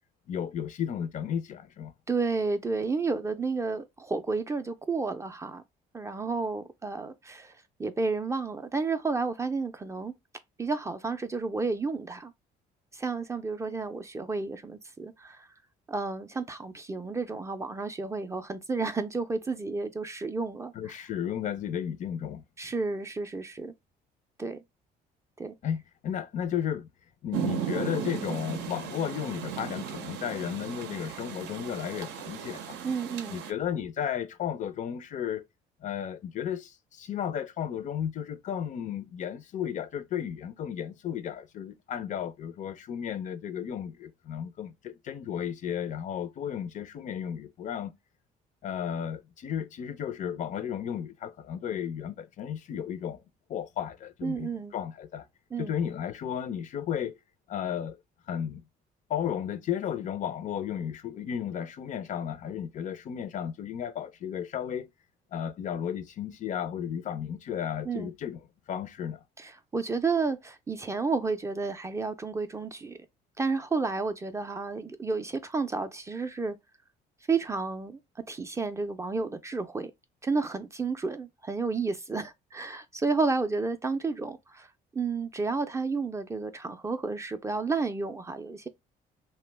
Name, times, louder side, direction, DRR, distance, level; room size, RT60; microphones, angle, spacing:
voice 1, 0.3-1.9 20.7-22.4 25.6-26.9 27.2-32.8 33.3-35.5 35.8-47.9 48.6-53.2 53.5-55.3 55.6-57.1 57.5-58.0 58.3-58.6 59.1-64.9 65.3-68.4 68.7-69.2, left 9 dB, 50° left, 0.4 m, -34 dB
voice 2, 2.1-5.6 5.9-10.1 10.6-12.3 12.9-15.5 15.9-21.0 22.6-23.7 24.4-24.6 25.4-25.5 32.8-33.4 54.2-54.7 55.5-55.7 67.9-68.1 69.4-73.0 73.4-76.6 77.3-78.0 78.3-79.9 80.2-88.7, right 4 dB, 15° right, 0.4 m, -31 dB
Rain, 27.3-33.5, right 9 dB, 85° right, 0.6 m, -36 dB
2.8 x 2.1 x 3.2 m
cardioid pair, 110°, 17 cm